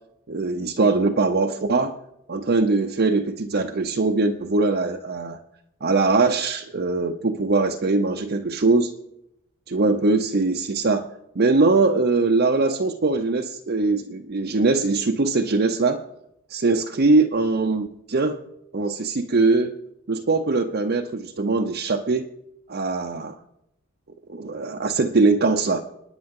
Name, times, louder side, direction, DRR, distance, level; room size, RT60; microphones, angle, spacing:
voice 1, 0.3-2.0 2.3-5.4 5.8-8.9 9.7-11.1 11.4-16.0 16.5-18.4 18.7-19.7 20.1-22.3 22.7-23.3 24.3-25.8, right 3 dB, 50° right, 2 dB, 0.7 m, -21 dB
28.5 x 9.9 x 3.7 m, 0.83 s
head